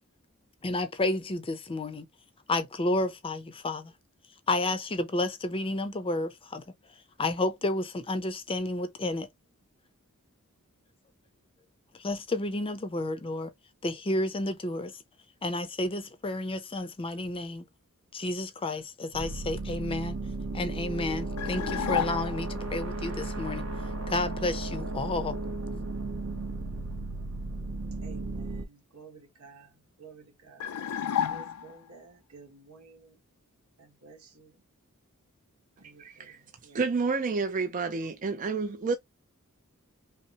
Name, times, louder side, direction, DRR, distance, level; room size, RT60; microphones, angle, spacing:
voice 1, 0.6-2.1 2.5-3.9 4.5-6.6 7.2-9.3 12.0-13.5 13.8-14.9 15.4-17.6 18.1-20.1 20.5-23.6 24.1-25.4, left 2 dB, 25° left, 0.6 m, -31 dB
sound 1, 19.1-28.6, right 2 dB, 65° right, 0.9 m, -35 dB
sound 2, 21.4-22.6 30.6-31.9, left 9 dB, 85° left, 0.4 m, -31 dB
voice 2, 28.0-29.7 30.0-30.7 31.3-33.1 33.8-34.5 35.8-36.3 36.6-36.8, right 4 dB, 85° right, 1.5 m, -52 dB
voice 3, 36.0-36.4 36.7-39.0, right 4 dB, 35° right, 0.4 m, -29 dB
5.4 x 2.0 x 2.8 m
head